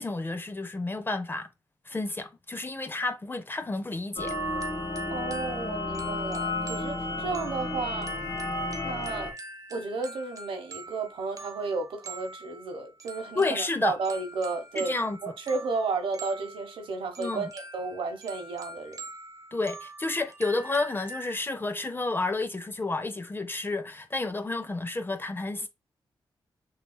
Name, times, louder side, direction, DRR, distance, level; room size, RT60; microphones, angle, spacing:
voice 1, 0.0-1.5 1.9-4.3 13.4-14.0 14.8-15.2 17.2-17.5 19.5-25.7, left 3 dB, 25° left, 0.6 m, -30 dB
sound 1, 4.2-9.3, left 2 dB, 45° left, 1.2 m, -32 dB
sound 2, 4.2-21.4, right 2 dB, 40° right, 1.1 m, -44 dB
voice 2, 5.1-8.1 8.8-9.3 9.7-19.0, right 4 dB, 85° right, 1.1 m, -33 dB
6.6 x 2.7 x 2.3 m
cardioid pair, 70°, 9 cm